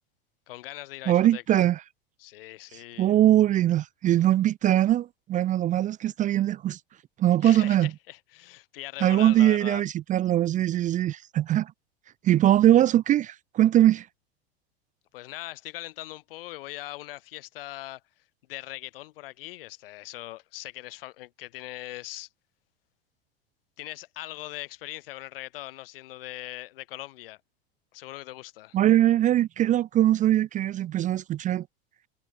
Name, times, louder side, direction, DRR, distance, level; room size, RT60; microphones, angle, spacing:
voice 1, 0.5-1.6 2.2-3.1 7.4-9.8 15.1-18.0 18.5-22.3 23.8-27.4 27.9-28.8, left 17 dB, 60° left, 1.3 m, -41 dB
voice 2, 1.1-1.8 3.0-6.8 7.2-7.9 9.0-11.7 12.2-14.1 28.7-31.7, right 12 dB, 25° right, 0.5 m, -21 dB
figure-of-eight pair, 85°, 31 cm